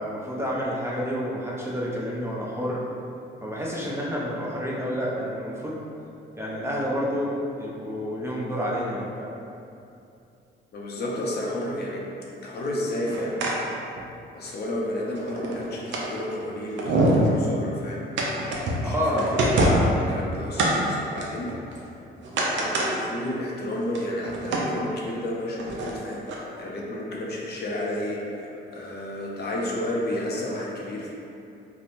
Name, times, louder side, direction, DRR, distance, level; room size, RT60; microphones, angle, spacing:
voice 1, 0.0-2.8 3.4-5.8 6.3-9.3 18.8-19.3, equal, 15° right, -5 dB, 0.4 m, -29 dB
voice 2, 10.7-12.0 12.4-13.8 14.3-18.0 18.8-21.6 22.5-31.1, left 1 dB, 55° left, -3 dB, 0.5 m, -31 dB
sound 1, 12.9-13.5 14.0-14.1 14.5-14.6 15.1-16.1 16.5-16.6 16.8-17.3 18.2-18.9 19.2-20.0 20.6-20.7 21.2-21.9 22.2-22.9 23.3-23.4 23.8-24.6 25.6-25.9 26.3-26.4, right 1 dB, 70° right, 0.5 m, -24 dB
2.9 x 2.1 x 2.5 m, 2.6 s
cardioid pair, 90°, 20 cm